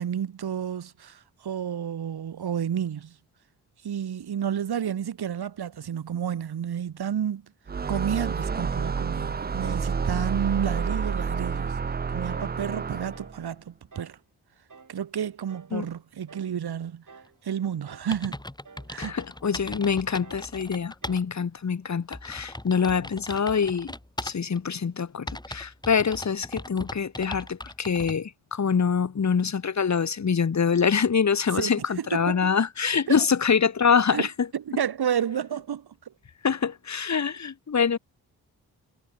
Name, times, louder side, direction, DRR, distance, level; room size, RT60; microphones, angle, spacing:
voice 1, 0.0-3.2 3.8-7.5 7.9-11.8 12.1-14.2 14.9-17.0 17.4-18.4 18.9-19.1 31.5-32.5 33.1-33.3 34.1-34.3 34.5-36.1, right 9 dB, 70° right, 2.1 m, -31 dB
sound 1, 7.7-13.4, right 5 dB, 25° right, 0.6 m, -29 dB
sound 2, 9.2-9.5 10.0-10.2 10.8-11.0 11.5-11.8 12.3-12.6 13.1-13.4 13.9-14.2 14.7-15.0 15.5-15.8 16.3-16.6 17.1-17.4 17.8-18.2 18.6-18.9 19.4-19.7 20.2-20.5 21.0-21.3, right 5 dB, 50° right, 5.0 m, -50 dB
sound 3, 17.7-17.8 18.1-21.2 21.6-21.7 22.1-24.6 25.3-28.2, left 1 dB, 10° left, 4.2 m, -39 dB
voice 2, 19.0-23.9 24.2-34.3 36.4-38.0, left 6 dB, 40° left, 1.5 m, -25 dB
supercardioid pair, 40°, 41 cm